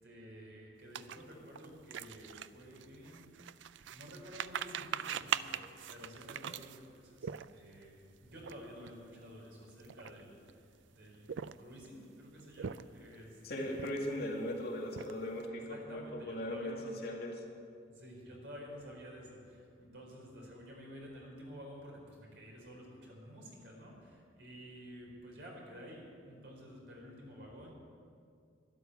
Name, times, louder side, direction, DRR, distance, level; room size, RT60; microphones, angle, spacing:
voice 1, 0.0-3.6 3.9-11.3 11.6-13.9 15.5-16.9 17.9-27.7, equal, 65° right, -1 dB, 4.4 m, -51 dB
sound 1, 0.9-7.8 8.4-8.5 8.8-9.0 9.7-10.5 11.1-11.9 12.4-13.1 13.7-14.3 14.6-15.4, right 8 dB, 90° right, 0.4 m, -41 dB
voice 2, 13.4-17.4, left 1 dB, 60° left, 0 dB, 2.1 m, -39 dB
13.0 x 11.5 x 8.1 m, 2.3 s
head